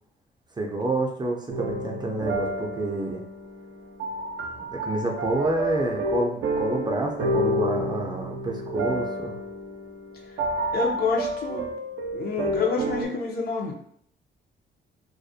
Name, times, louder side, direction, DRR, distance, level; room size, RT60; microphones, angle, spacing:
voice 1, 0.6-3.2 4.6-9.4, right 2 dB, 20° right, 1 dB, 0.4 m, -28 dB
sound 1, 1.5-13.0, right 1 dB, 85° right, 0.5 m, -30 dB
voice 2, 10.7-11.6 12.1-13.7, left 4 dB, 50° left, 1 dB, 0.6 m, -27 dB
2.4 x 2.1 x 2.6 m, 0.66 s
cardioid pair, 90°, 20 cm